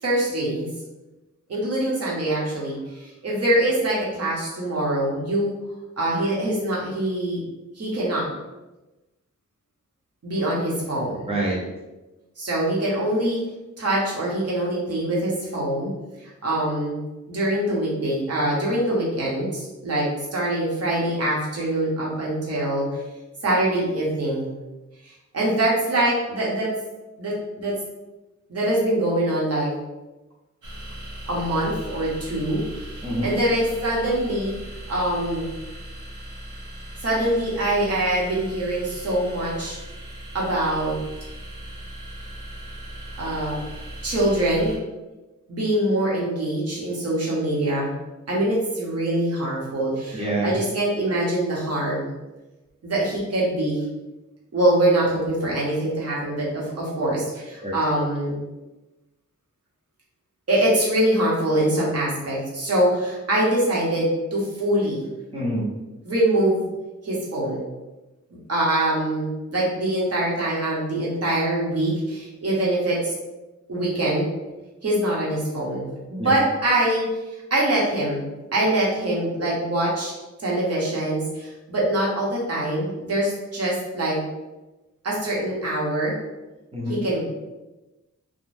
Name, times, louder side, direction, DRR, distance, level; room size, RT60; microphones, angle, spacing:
voice 1, 0.0-0.7 1.5-5.5 6.0-7.4 7.8-8.2 10.2-11.2 12.4-13.4 13.8-15.9 16.2-17.0 17.3-20.1 20.3-22.9 23.4-24.5 25.0-26.7 27.2-27.7 28.5-29.8 31.3-32.6 32.9-34.5 34.9-35.5 37.0-39.8 40.3-40.9 43.2-43.5 44.0-44.7 45.5-47.9 48.3-52.0 52.8-53.8 54.5-58.3 60.5-65.0 66.0-66.6 67.0-67.6 68.5-73.1 73.7-74.3 74.8-77.1 77.5-78.2 78.5-84.2 85.0-86.1 86.9-87.2, right 1 dB, 55° right, -5 dB, 0.9 m, -24 dB
voice 2, 11.3-11.6 33.0-33.3 50.1-50.5 57.6-57.8 65.3-65.7 76.2-76.4 86.7-87.0, right 1 dB, 20° right, -5 dB, 0.6 m, -26 dB
sound 1, 30.6-44.8, equal, 80° right, 0.7 m, -38 dB
2.5 x 2.2 x 3.2 m, 1.1 s
wide cardioid pair, 175°, 31 cm